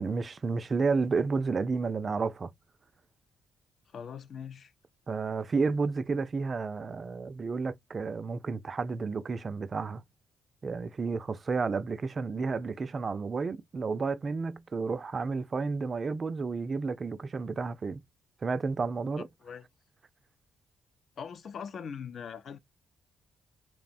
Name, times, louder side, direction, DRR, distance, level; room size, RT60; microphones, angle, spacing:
voice 1, 0.0-2.5 5.1-10.0 10.6-18.0 18.4-19.3, right 4 dB, 40° right, 0.3 m, -31 dB
voice 2, 3.9-4.7 19.2-19.6 21.2-22.6, left 7 dB, 60° left, 0.4 m, -41 dB
2.9 x 2.0 x 2.5 m
cardioid pair, 80°, 0 cm